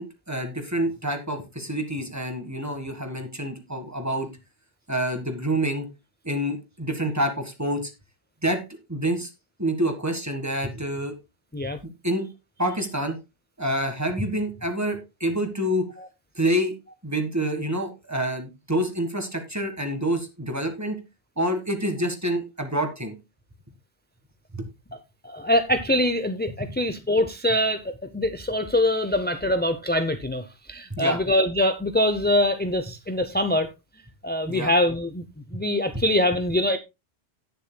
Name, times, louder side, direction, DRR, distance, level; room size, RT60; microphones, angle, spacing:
voice 1, 0.0-4.3 4.9-5.9 6.2-7.9 8.4-8.6 8.9-9.3 9.6-11.1 12.0-12.3 12.6-13.2 13.6-15.9 16.3-16.7 17.0-21.0 21.4-23.1 30.9-31.2 34.5-34.7, right 1 dB, 15° right, 1.6 m, -27 dB
voice 2, 25.2-33.7 34.2-35.2 35.5-36.8, left 1 dB, 15° left, 0.4 m, -24 dB
17.5 x 6.7 x 2.2 m
omnidirectional pair, 1.2 m